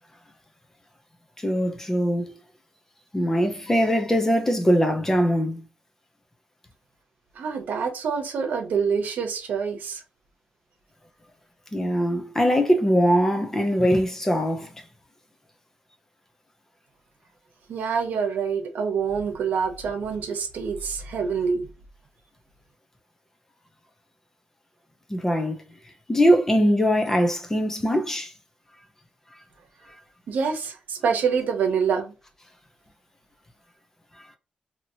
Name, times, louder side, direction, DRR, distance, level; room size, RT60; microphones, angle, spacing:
voice 1, 1.4-2.3 3.1-5.6 11.7-14.7 25.1-25.6 26.1-28.3, equal, 15° left, 0.6 m, -21 dB
voice 2, 7.4-10.0 17.7-21.7 30.3-32.1, right 6 dB, 80° right, 0.8 m, -26 dB
2.8 x 2.8 x 2.7 m
wide cardioid pair, 135°, 3 cm